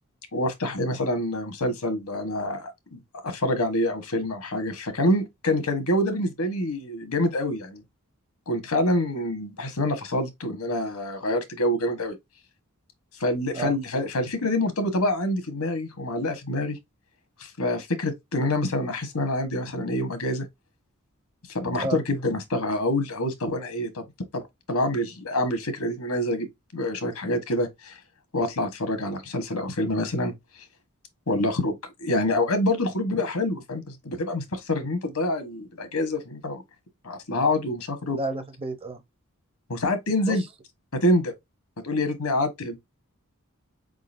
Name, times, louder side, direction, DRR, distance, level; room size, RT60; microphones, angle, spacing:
voice 1, 0.3-7.8 8.5-12.2 13.2-16.8 17.4-20.5 21.5-24.0 24.3-24.4 24.7-26.5 26.7-28.0 28.3-30.3 31.3-36.6 37.0-38.2 39.7-40.4 40.9-41.3 41.8-42.8, left 1 dB, 80° left, 1.1 m, -26 dB
voice 2, 38.1-39.0 40.2-40.5, right 2 dB, 25° right, 0.7 m, -31 dB
4.7 x 3.8 x 2.5 m
head